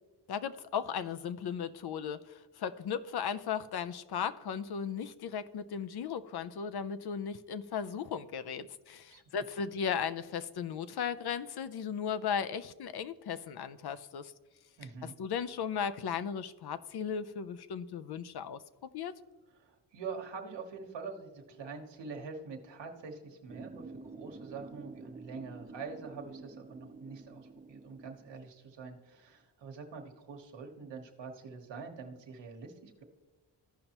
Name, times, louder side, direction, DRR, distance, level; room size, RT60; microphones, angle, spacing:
voice 1, 0.3-14.3 15.0-19.1, left 7 dB, 65° left, 12 dB, 0.6 m, -36 dB
voice 2, 14.8-15.1 19.5-33.0, right 5 dB, 85° right, 2 dB, 1.3 m, -45 dB
sound 1, 23.5-28.5, right 3 dB, 20° right, 0.6 m, -49 dB
14.5 x 5.4 x 3.0 m, 1.2 s
cardioid pair, 80°, 42 cm